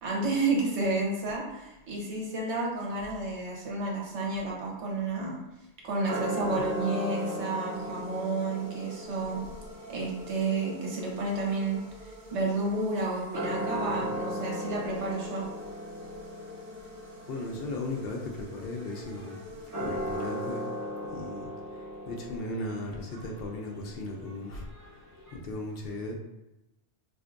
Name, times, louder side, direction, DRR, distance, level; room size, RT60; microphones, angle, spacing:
voice 1, 0.0-5.4 5.8-9.4 9.9-15.4, right 3 dB, 80° right, -2 dB, 1.2 m, -31 dB
sound 1, 6.1-12.7 13.2-25.3, equal, 15° right, 1.0 m, -38 dB
sound 2, 6.1-21.3, left 1 dB, 55° right, 0.9 m, -48 dB
voice 2, 13.8-14.2 17.3-19.4 19.8-20.7 21.1-21.5 22.1-24.6 25.3-26.2, left 2 dB, 65° left, 1 dB, 0.7 m, -36 dB
4.3 x 2.5 x 2.5 m, 0.96 s
omnidirectional pair, 1.2 m